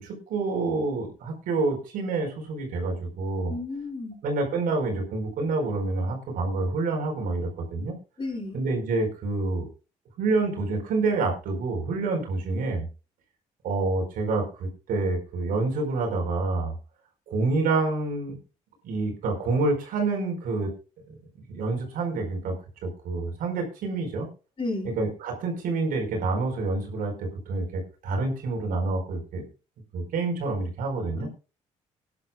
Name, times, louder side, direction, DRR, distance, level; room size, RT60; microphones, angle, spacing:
voice 1, 0.0-3.5 4.2-8.0 8.5-9.6 10.2-12.9 13.6-16.7 17.3-18.4 18.8-20.7 21.5-22.5 22.8-24.3 24.8-29.4 29.9-31.3, right 3 dB, 80° right, 2 dB, 4.6 m, -27 dB
voice 2, 3.5-4.2 8.2-8.6 24.6-25.0 31.2-31.3, left 2 dB, 35° left, 0 dB, 7.5 m, -32 dB
20.5 x 10.5 x 2.4 m, 0.34 s
supercardioid pair, 55°, 14 cm